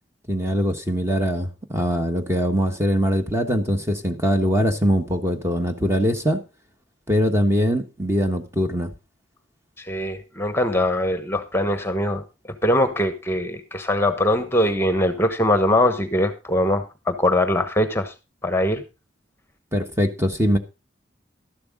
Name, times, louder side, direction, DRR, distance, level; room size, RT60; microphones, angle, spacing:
voice 1, 0.3-6.4 7.1-8.9 19.7-20.6, equal, 15° right, 1.2 m, -22 dB
voice 2, 9.8-12.2 12.6-18.1 18.4-18.8, left 1 dB, 15° left, 1.1 m, -22 dB
13.0 x 11.5 x 3.7 m
head